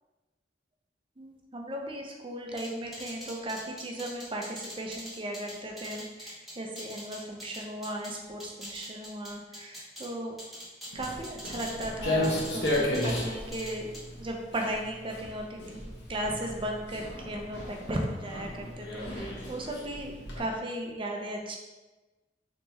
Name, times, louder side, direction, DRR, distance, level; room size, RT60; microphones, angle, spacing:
voice 1, 1.2-10.4 10.9-20.1 20.4-21.6, right 1 dB, 30° right, 1 dB, 0.6 m, -36 dB
sound 1, 2.6-8.1 8.4-10.1 10.4-11.9 12.2-13.3 13.5-14.0, equal, ahead, 0.9 m, -43 dB
Walk footsteps, 10.9-20.4, left 1 dB, 75° left, 0.9 m, -34 dB
4.0 x 3.7 x 2.8 m, 1.2 s
head